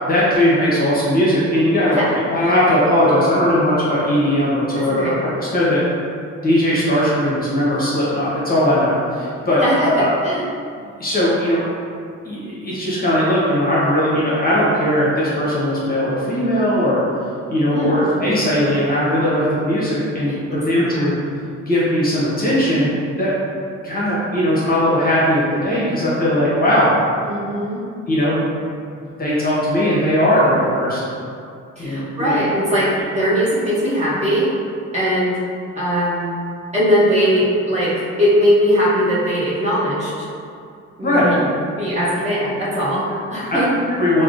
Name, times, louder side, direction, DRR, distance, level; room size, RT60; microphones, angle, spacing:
voice 1, 0.0-2.0 2.3-5.8 6.4-10.1 11.0-11.6 12.2-17.0 17.5-21.1 21.7-22.9 23.2-23.3 23.8-26.9 28.1-28.4 29.0-31.0 31.8-32.3 41.0-41.3 43.5-44.2, equal, 30° left, -8 dB, 0.8 m, -18 dB
voice 2, 9.6-10.4 17.7-18.2 20.3-20.6 20.9-21.1 27.2-27.8 31.8-34.5 34.9-35.4 35.8-36.3 36.7-40.3 41.0-43.7, equal, 25° right, -9 dB, 0.9 m, -20 dB
3.4 x 2.0 x 2.5 m, 2.4 s
cardioid pair, 90°, 30 cm